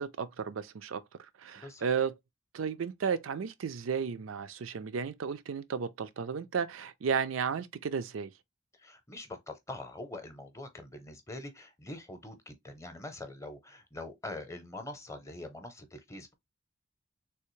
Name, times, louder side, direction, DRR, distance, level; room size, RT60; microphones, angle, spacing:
voice 1, 0.0-2.1 2.5-8.3, right 6 dB, 85° right, 0.4 m, -33 dB
voice 2, 1.6-1.9 8.8-16.3, left 2 dB, 15° left, 0.6 m, -44 dB
3.4 x 2.7 x 3.1 m
head